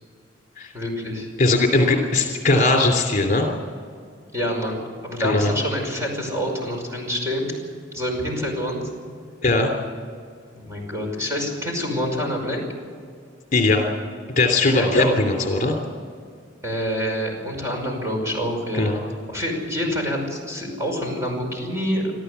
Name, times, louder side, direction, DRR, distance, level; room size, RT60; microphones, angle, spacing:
voice 1, 0.7-1.3 4.3-7.5 7.9-8.8 10.5-12.6 14.7-15.2 16.6-18.9 19.3-22.1, equal, 15° right, 0 dB, 5.4 m, -26 dB
voice 2, 1.4-3.5 5.2-5.5 9.4-9.7 13.5-13.8 14.4-15.8 18.7-19.0, left 2 dB, 45° left, 3 dB, 3.0 m, -19 dB
25.0 x 14.0 x 8.2 m, 2.1 s
head